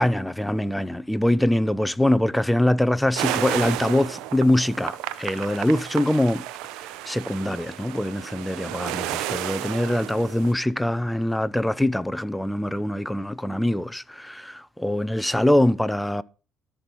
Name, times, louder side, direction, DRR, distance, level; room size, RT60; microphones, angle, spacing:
voice 1, 0.0-6.5 7.0-16.2, left 1 dB, 5° left, 0.7 m, -23 dB
sound 1, 3.2-10.5, right 14 dB, 85° right, 0.9 m, -32 dB
13.5 x 6.1 x 5.4 m
cardioid pair, 105°, 0 cm